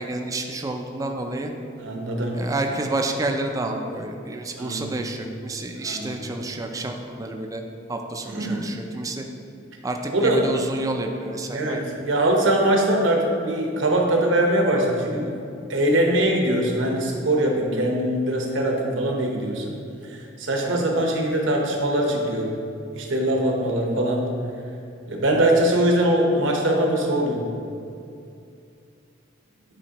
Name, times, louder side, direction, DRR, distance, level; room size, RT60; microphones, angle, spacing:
voice 1, 0.0-1.5 2.3-7.6 7.9-9.2 9.8-11.8 20.6-21.0, right 2 dB, 20° right, 3 dB, 0.4 m, -29 dB
voice 2, 1.8-2.4 4.6-5.0 5.8-6.1 8.3-8.7 10.1-10.4 11.5-15.3 15.7-19.8 20.1-22.6 22.9-24.3 25.1-27.4, right 1 dB, 80° right, 0 dB, 1.0 m, -22 dB
9.0 x 4.2 x 2.9 m, 2.5 s
head